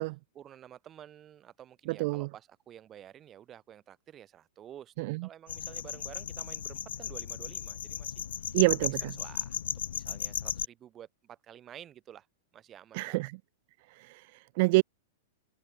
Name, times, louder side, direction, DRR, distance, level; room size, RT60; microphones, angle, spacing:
voice 1, 0.3-4.9 5.2-8.1 8.4-8.5 9.0-12.3 12.5-13.3, right 10 dB, 30° right, 7.2 m, -51 dB
voice 2, 1.9-2.3 5.0-5.3 8.5-9.1 12.9-13.3 14.0-14.8, right 24 dB, 55° right, 0.5 m, -27 dB
sound 1, 5.5-10.7, left 9 dB, 80° left, 0.4 m, -36 dB
hypercardioid pair, 120°, 0 cm